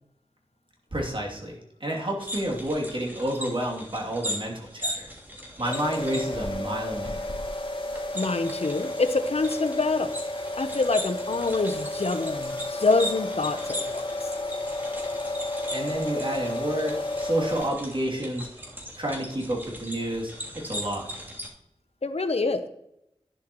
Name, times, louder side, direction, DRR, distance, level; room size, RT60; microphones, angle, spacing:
voice 1, 0.9-5.1 5.6-7.2 15.7-18.5 19.0-20.3 20.6-21.1, right 1 dB, 50° right, -2 dB, 2.8 m, -30 dB
sound 1, 2.2-21.5, equal, 20° right, 3.0 m, -39 dB
sound 2, 5.6-17.7, left 1 dB, 50° left, 1.8 m, -32 dB
voice 2, 8.1-10.1 10.6-14.3 22.0-22.7, left 3 dB, 70° left, 9 dB, 0.8 m, -26 dB
11.5 x 10.5 x 3.1 m, 0.80 s
wide cardioid pair, 50°, 11 cm